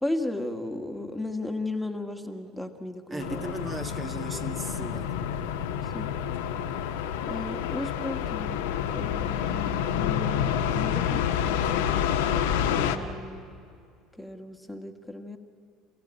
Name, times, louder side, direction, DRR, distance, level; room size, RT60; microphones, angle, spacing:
voice 1, 0.0-3.6 5.9-6.1 7.2-8.7 8.9-13.5 14.1-15.4, left 2 dB, 5° left, 4 dB, 1.8 m, -35 dB
voice 2, 3.1-5.2, right 2 dB, 25° right, 4 dB, 1.6 m, -37 dB
sound 1, 3.2-13.0, left 9 dB, 80° left, 1.3 m, -28 dB
28.0 x 15.5 x 8.9 m, 2.3 s
hypercardioid pair, 70°, 0 cm